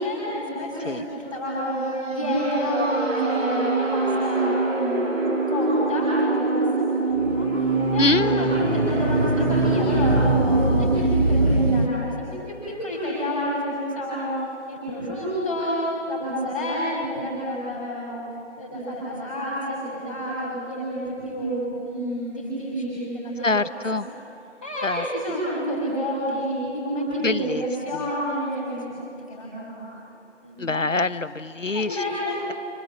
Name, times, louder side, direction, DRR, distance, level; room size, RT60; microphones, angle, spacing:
voice 1, 0.0-1.8 2.1-14.3 14.7-18.2 18.6-23.7 24.6-30.0 30.4-30.6 31.7-32.4, equal, 5° left, -15 dB, 4.5 m, -29 dB
sound 1, 1.6-11.9, right 2 dB, 90° right, 3.5 m, -23 dB
voice 2, 8.0-8.7 23.4-24.1 24.8-25.1 27.2-27.6 27.9-28.1 30.6-32.0, left 3 dB, 85° left, 14 dB, 1.3 m, -25 dB
29.5 x 26.5 x 7.6 m, 2.8 s
figure-of-eight pair, 175°, 37 cm